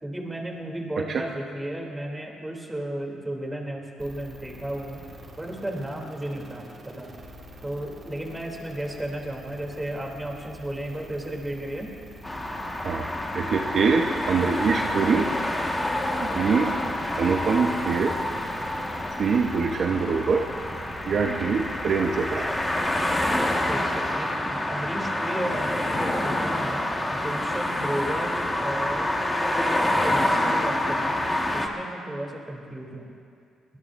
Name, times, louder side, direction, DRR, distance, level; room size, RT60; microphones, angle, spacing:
voice 1, 0.0-7.1 7.6-11.9 23.7-29.2 29.8-31.2 31.5-33.1, right 1 dB, 10° right, 0 dB, 3.0 m, -34 dB
sound 1, 4.0-23.3, equal, 40° right, 2.4 m, -45 dB
sound 2, 12.2-31.7, left 1 dB, 15° left, 1.6 m, -27 dB
voice 2, 13.3-15.3 16.2-16.7 17.2-18.2 19.2-20.5 21.1-22.5, right 5 dB, 55° right, 2 dB, 1.0 m, -24 dB
23.5 x 19.5 x 2.6 m, 2.4 s
cardioid pair, 90°, 0 cm